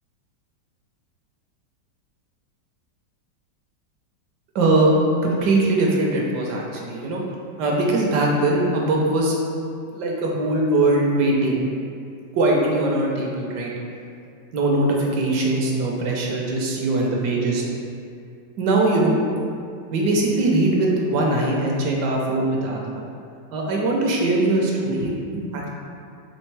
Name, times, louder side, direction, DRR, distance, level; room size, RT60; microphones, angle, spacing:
voice 1, 4.5-4.9 5.2-7.2 7.6-9.4 9.9-11.6 12.3-13.7 14.5-17.7 18.6-19.2 19.9-23.1 23.5-25.7, right 2 dB, 75° right, -2 dB, 1.2 m, -21 dB
4.3 x 3.1 x 3.2 m, 2.3 s
omnidirectional pair, 1.9 m